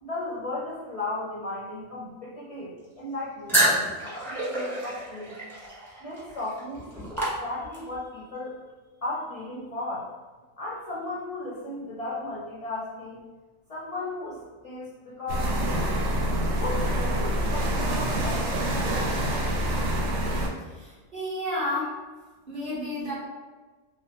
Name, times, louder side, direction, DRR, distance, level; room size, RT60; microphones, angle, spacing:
voice 1, 0.0-5.4 6.0-7.1 7.4-8.6 9.0-10.1 10.6-13.2 13.7-15.5 16.6-19.3, left 2 dB, 50° left, -6 dB, 0.4 m, -35 dB
sound 1, 3.5-8.0, right 1 dB, ahead, 0.8 m, -28 dB
sound 2, 15.3-20.5, equal, 75° right, 0.9 m, -26 dB
voice 2, 20.7-21.9 22.5-23.1, left 1 dB, 40° right, -8 dB, 1.2 m, -31 dB
3.1 x 2.7 x 2.9 m, 1.3 s
omnidirectional pair, 1.4 m